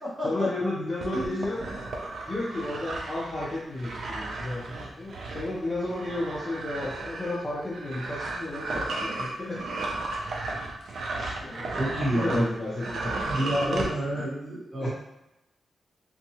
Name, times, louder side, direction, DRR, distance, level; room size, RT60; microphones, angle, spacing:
voice 1, 0.2-1.7 2.3-9.6 11.4-13.3 13.7-13.9 14.8-14.9, left 2 dB, 25° left, -7 dB, 0.6 m, -32 dB
sound 1, 1.0-12.5 12.7-13.9, right 2 dB, 65° right, 0.4 m, -34 dB
voice 2, 11.2-11.5 11.7-12.5 13.3-14.9, right 1 dB, 15° right, -8 dB, 1.0 m, -29 dB
2.7 x 2.2 x 2.8 m, 0.93 s
wide cardioid pair, 160°, 0 cm